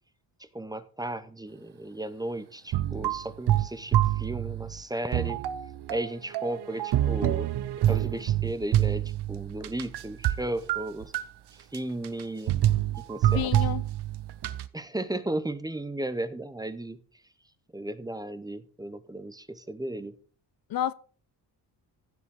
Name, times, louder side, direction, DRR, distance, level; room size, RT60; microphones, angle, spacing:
voice 1, 0.5-5.4 5.9-7.5 7.8-11.1 11.7-12.6 13.0-13.7 14.7-17.0 17.7-20.2, right 1 dB, 10° right, 0.7 m, -35 dB
sound 1, 2.7-4.8 5.1-10.4 10.7-11.3 11.7-11.8 12.0-12.2 12.5-14.7, right 13 dB, 70° right, 0.8 m, -26 dB
voice 2, 13.2-13.8 20.7-20.9, left 11 dB, 60° left, 0.5 m, -29 dB
15.5 x 6.6 x 3.7 m
cardioid pair, 120°, 42 cm